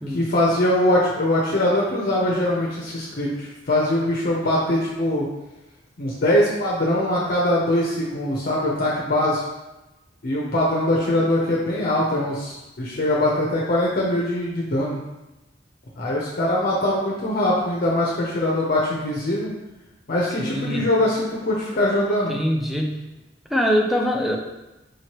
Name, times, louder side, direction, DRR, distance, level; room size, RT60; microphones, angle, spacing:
voice 1, 0.1-5.3 6.0-9.4 10.2-15.0 16.0-19.5 20.1-22.4, left 1 dB, 55° left, -4 dB, 0.7 m, -22 dB
voice 2, 20.4-20.9 22.3-23.0 23.5-24.4, equal, ahead, 1 dB, 0.4 m, -23 dB
4.9 x 3.1 x 3.0 m, 1.0 s
head